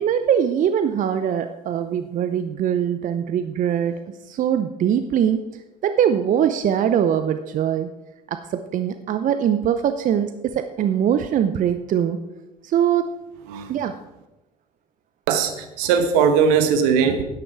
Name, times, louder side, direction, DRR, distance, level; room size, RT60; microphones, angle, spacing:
voice 1, 0.0-3.9 4.2-7.9 8.3-12.2 12.6-13.1 13.7-13.9, right 9 dB, 45° right, 10 dB, 0.7 m, -22 dB
voice 2, 15.3-17.2, right 6 dB, 70° right, 8 dB, 1.3 m, -19 dB
12.0 x 9.6 x 4.6 m, 1.0 s
hypercardioid pair, 60°, 19 cm